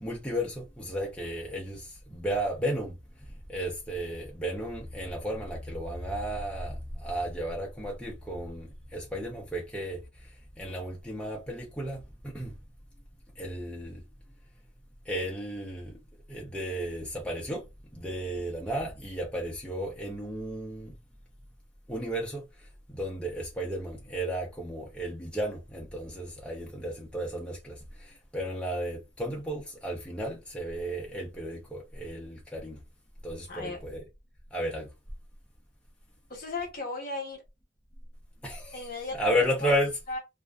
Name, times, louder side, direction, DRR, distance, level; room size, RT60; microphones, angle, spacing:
voice 1, 0.0-1.8 2.1-2.9 3.5-8.7 8.9-10.0 10.6-12.0 12.3-12.5 13.4-14.0 15.1-15.9 16.3-17.6 18.0-20.9 21.9-22.4 22.9-27.7 28.3-32.8 33.2-34.0 34.5-34.9 38.4-38.9 39.2-39.9, equal, 5° left, 0.5 m, -33 dB
voice 2, 33.5-33.8 36.3-37.4 38.7-39.8 40.1-40.2, left 3 dB, 50° left, 0.9 m, -36 dB
2.4 x 2.3 x 2.2 m
head